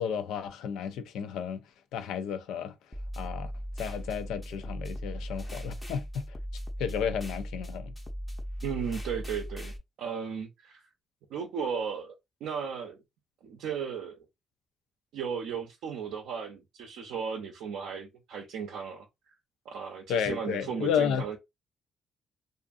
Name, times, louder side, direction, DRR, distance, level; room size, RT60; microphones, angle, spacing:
voice 1, 0.0-1.6 1.9-2.7 3.2-3.5 3.8-6.4 6.8-7.9 20.1-21.2, left 8 dB, 85° left, 0.4 m, -32 dB
sound 1, 2.9-9.8, equal, 20° left, 0.6 m, -38 dB
voice 2, 8.6-10.8 11.3-12.1 12.4-13.0 13.4-14.2 15.1-19.1 19.7-21.4, right 6 dB, 85° right, 0.5 m, -35 dB
2.5 x 2.5 x 2.4 m
cardioid pair, 90°, 0 cm